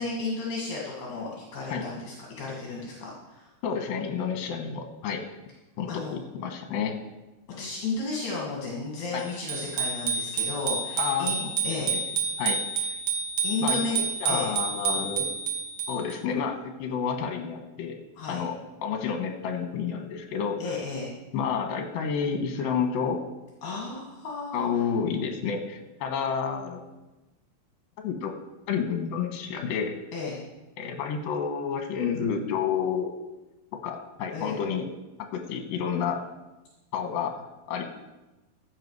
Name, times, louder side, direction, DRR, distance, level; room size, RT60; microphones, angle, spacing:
voice 1, 0.0-3.5 5.9-6.2 7.6-11.4 11.6-11.9 13.4-14.5 18.2-18.4 20.6-21.1 23.6-24.8 30.1-30.4 34.3-34.6, left 3 dB, 55° left, -4 dB, 3.0 m, -33 dB
voice 2, 3.6-5.2 5.8-6.9 9.1-9.3 11.0-12.0 12.4-13.0 13.6-15.3 15.9-18.0 18.3-18.6 18.8-20.8 21.3-23.2 24.5-26.8 28.0-28.3 28.7-30.0 30.8-33.1 33.8-34.9 35.3-36.2 36.9-37.9, left 6 dB, 70° left, 5 dB, 2.8 m, -30 dB
Bicycle bell, 9.5-16.1, right 5 dB, 55° right, 1.9 m, -29 dB
15.0 x 8.0 x 4.8 m, 1.0 s
omnidirectional pair, 4.7 m